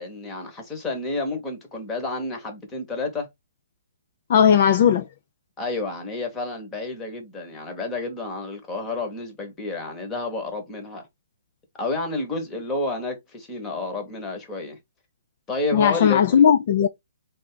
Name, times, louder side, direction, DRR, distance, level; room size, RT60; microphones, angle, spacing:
voice 1, 0.0-3.3 5.6-11.1 11.8-14.8 15.5-16.4, left 3 dB, 10° left, 1.1 m, -30 dB
voice 2, 4.3-5.0 15.7-16.9, left 8 dB, 35° left, 0.4 m, -17 dB
3.7 x 3.3 x 3.8 m
hypercardioid pair, 170°, 0 cm